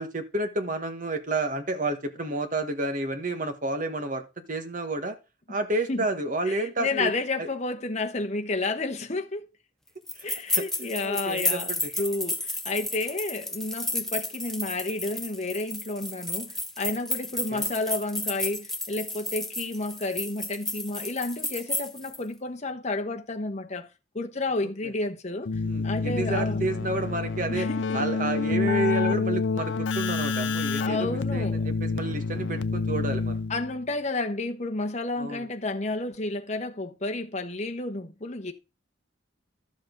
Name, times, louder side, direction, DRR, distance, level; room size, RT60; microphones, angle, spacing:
voice 1, 0.0-5.2 5.5-7.1 7.4-7.5 10.2-10.3 10.5-10.6 11.0-11.9 17.5-17.7 24.8-24.9 25.6-33.4 35.2-35.5, right 2 dB, 40° right, 1.5 m, -30 dB
voice 2, 6.5-9.5 10.2-23.9 24.1-25.5 25.8-26.6 27.5-28.0 30.8-31.7 33.5-38.5, left 2 dB, 35° left, 1.2 m, -31 dB
sound 1, 10.1-22.2, left 1 dB, ahead, 0.9 m, -32 dB
Keyboard (musical), 25.5-33.8, left 4 dB, 70° left, 0.6 m, -28 dB
12.0 x 7.1 x 3.9 m
head